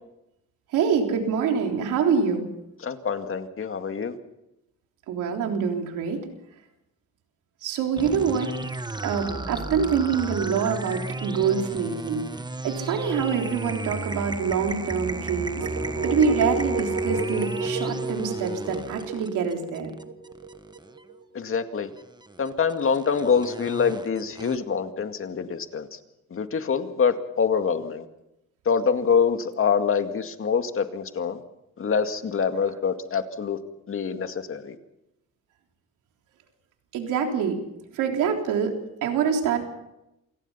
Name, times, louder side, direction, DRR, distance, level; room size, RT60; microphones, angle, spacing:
voice 1, 0.7-2.5 5.1-6.2 7.6-8.6 9.0-12.2 12.6-15.7 16.0-19.9 36.9-37.6 37.9-39.6, right 6 dB, 90° right, 3 dB, 3.6 m, -25 dB
voice 2, 2.8-4.2 21.3-21.9 22.4-26.0 26.3-28.1 28.7-31.4 31.8-33.6 33.9-34.8, left 6 dB, 45° left, 7 dB, 2.1 m, -25 dB
sound 1, 8.0-21.0 21.9-24.6, right 2 dB, 15° right, 1.4 m, -34 dB
sound 2, 15.6-21.4, right 3 dB, 70° right, 4.4 m, -31 dB
27.5 x 18.5 x 5.7 m, 0.89 s
cardioid pair, 90°, 30 cm